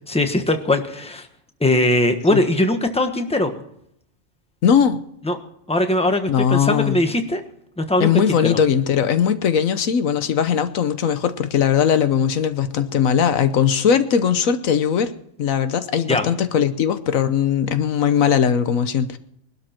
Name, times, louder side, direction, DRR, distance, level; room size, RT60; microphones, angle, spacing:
voice 1, 0.1-1.3 1.6-3.5 5.2-5.4 5.7-7.4 7.8-8.6 16.1-16.2, left 1 dB, 5° left, 6 dB, 1.2 m, -20 dB
voice 2, 4.6-5.0 6.3-7.0 8.0-15.1 15.4-19.2, left 8 dB, 85° left, 11 dB, 1.4 m, -19 dB
21.0 x 12.0 x 4.4 m, 0.74 s
omnidirectional pair, 1.4 m